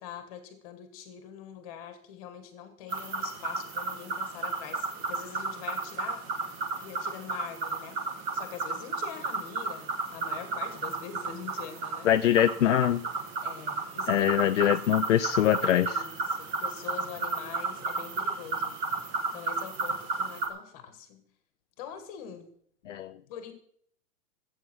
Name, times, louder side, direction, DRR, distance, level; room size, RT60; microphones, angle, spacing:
voice 1, 0.0-6.2 6.8-8.0 8.3-12.1 13.4-14.3 14.6-14.8 15.8-18.8 19.3-21.3 21.8-22.5 23.3-23.5, left 8 dB, 25° left, 9 dB, 1.6 m, -43 dB
sound 1, 2.9-20.5, right 3 dB, 15° right, 1.3 m, -33 dB
voice 2, 12.0-13.0 14.1-16.0 22.9-23.1, left 11 dB, 55° left, 11 dB, 0.5 m, -23 dB
14.5 x 8.6 x 6.1 m, 0.64 s
hypercardioid pair, 180°, 46 cm